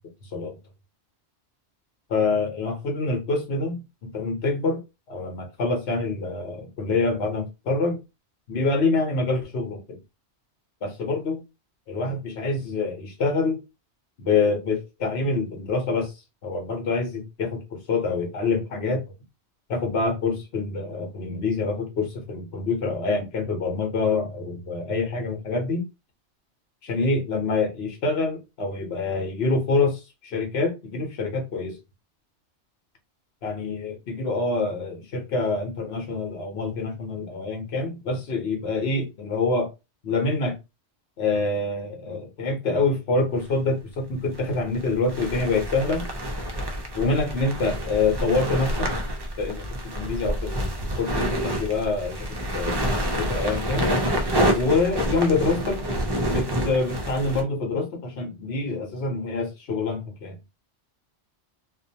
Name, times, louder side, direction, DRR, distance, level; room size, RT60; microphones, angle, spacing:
voice 1, 2.1-4.8 5.1-8.0 8.5-10.0 10.8-11.4 11.9-13.6 14.2-16.1 16.4-19.0 19.7-25.8 26.8-31.8 33.4-39.7 40.0-40.6 41.2-46.1 46.9-48.9 49.4-53.9 54.5-55.8 56.3-60.4, left 3 dB, 70° left, 1.1 m, -26 dB
sound 1, 43.4-43.5 44.3-57.4, equal, 40° right, 0.3 m, -27 dB
2.6 x 2.2 x 2.7 m
omnidirectional pair, 1.1 m